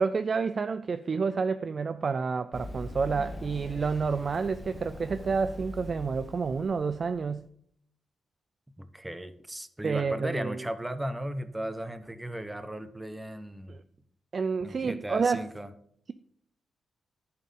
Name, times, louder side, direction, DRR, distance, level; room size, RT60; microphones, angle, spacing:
voice 1, 0.0-7.5 9.8-10.6 13.7-13.8 14.3-15.5, right 5 dB, 45° right, 0.3 m, -29 dB
Run, 2.5-7.3, left 1 dB, 30° left, 1.0 m, -42 dB
voice 2, 8.8-13.8 14.6-15.7, right 1 dB, 10° right, 0.8 m, -36 dB
11.0 x 4.4 x 5.4 m
cardioid pair, 90°, 0 cm